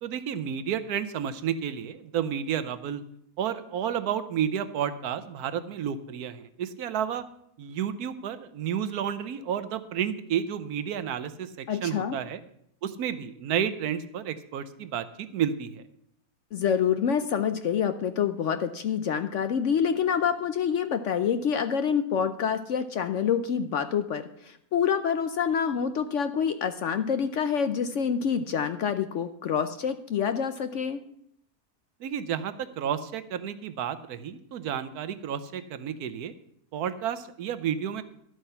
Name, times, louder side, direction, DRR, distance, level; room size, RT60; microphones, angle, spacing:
voice 1, 0.0-3.0 3.4-7.2 7.6-12.4 12.8-15.8 32.0-36.3 36.7-38.0, right 9 dB, 85° right, 12 dB, 1.3 m, -31 dB
voice 2, 11.7-12.2 16.5-31.0, left 7 dB, 65° left, 9 dB, 0.9 m, -27 dB
12.0 x 8.0 x 5.6 m, 0.72 s
omnidirectional pair, 1.6 m